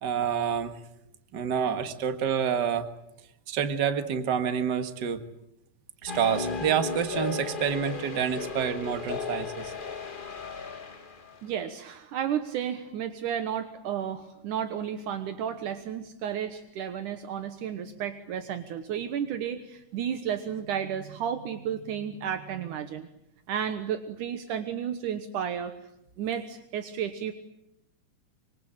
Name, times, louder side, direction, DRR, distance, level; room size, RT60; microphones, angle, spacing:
voice 1, 0.0-0.7 1.3-2.9 3.5-5.2 6.0-9.7, right 8 dB, 40° right, 9 dB, 1.8 m, -28 dB
sound 1, 6.1-11.4, left 5 dB, 45° left, 0.6 m, -35 dB
voice 2, 11.4-23.1 23.5-25.7 26.2-27.3, right 9 dB, 75° right, 9 dB, 2.7 m, -32 dB
25.5 x 25.0 x 8.8 m, 0.81 s
omnidirectional pair, 3.7 m